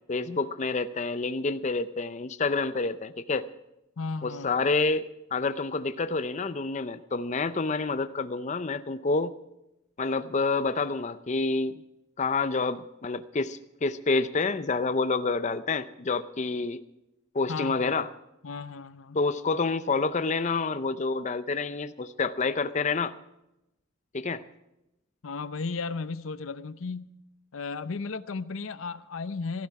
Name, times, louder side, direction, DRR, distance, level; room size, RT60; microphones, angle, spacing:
voice 1, 0.1-3.5 4.2-5.0 5.3-9.3 10.0-11.7 12.2-16.8 17.3-18.1 19.1-23.1 24.1-24.4, left 3 dB, 35° left, 12 dB, 0.5 m, -28 dB
voice 2, 4.0-4.5 17.5-17.9 18.4-19.2 25.2-27.1 27.5-29.7, left 4 dB, 85° left, 14 dB, 0.7 m, -34 dB
16.0 x 14.5 x 4.8 m, 0.88 s
head